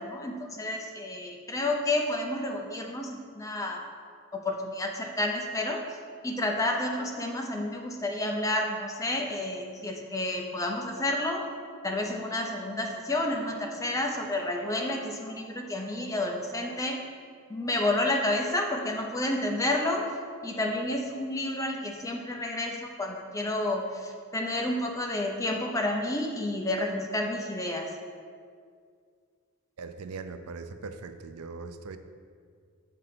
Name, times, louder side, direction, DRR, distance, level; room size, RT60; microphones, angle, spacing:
voice 1, 0.0-3.9 4.3-5.8 6.2-11.4 11.8-17.0 17.5-20.0 20.4-27.9, left 1 dB, 15° left, 1 dB, 0.5 m, -30 dB
voice 2, 29.8-32.0, right 4 dB, 85° right, 9 dB, 0.4 m, -40 dB
6.6 x 3.8 x 5.8 m, 2.1 s
head